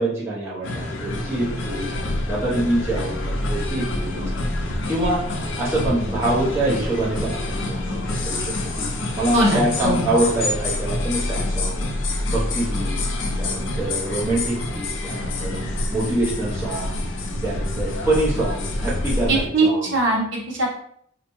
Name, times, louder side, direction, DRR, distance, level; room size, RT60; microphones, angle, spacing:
voice 1, 0.0-1.9 2.3-4.3 4.9-5.2 5.6-7.9 8.2-8.9 9.2-11.8 12.3-12.9 13.4-15.6 15.9-17.0 17.4-19.9, right 1 dB, 15° right, -7 dB, 0.8 m, -25 dB
sound 1, 0.6-19.5, left 1 dB, 65° left, 0.5 m, -27 dB
voice 2, 9.3-10.1 19.3-20.7, right 2 dB, 60° right, -2 dB, 0.9 m, -21 dB
4.1 x 2.2 x 3.0 m, 0.66 s
head